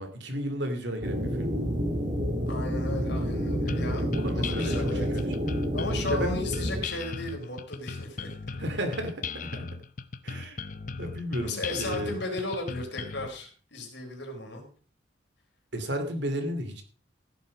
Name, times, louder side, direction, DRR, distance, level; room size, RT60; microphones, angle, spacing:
voice 1, 0.0-1.5 4.1-5.3 6.1-6.4 8.6-9.7 10.2-10.6 11.0-12.2 15.7-16.8, equal, 65° right, 7 dB, 2.7 m, -33 dB
sound 1, 1.0-6.8, equal, 40° right, 1.9 m, -29 dB
voice 2, 2.5-4.1 4.3-5.1 5.7-8.3 11.4-14.6, left 2 dB, 65° left, 2 dB, 4.1 m, -35 dB
sound 2, 3.7-13.3, left 4 dB, 40° left, 0.7 m, -37 dB
15.5 x 7.7 x 5.1 m, 0.41 s
head